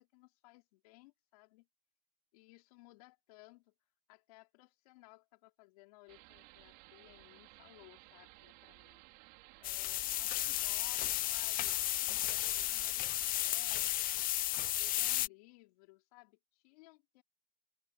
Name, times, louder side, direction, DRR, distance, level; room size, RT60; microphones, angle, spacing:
voice 1, 0.0-1.7 2.3-3.7 4.1-9.0 9.6-11.8 12.2-14.3 14.6-17.2, left 23 dB, 90° left, 4.7 m, -60 dB
sound 1, 6.1-13.6, right 26 dB, 80° right, 5.4 m, -58 dB
sound 2, 9.6-15.3, left 15 dB, 50° left, 0.4 m, -33 dB
open air
supercardioid pair, 85°, 19 cm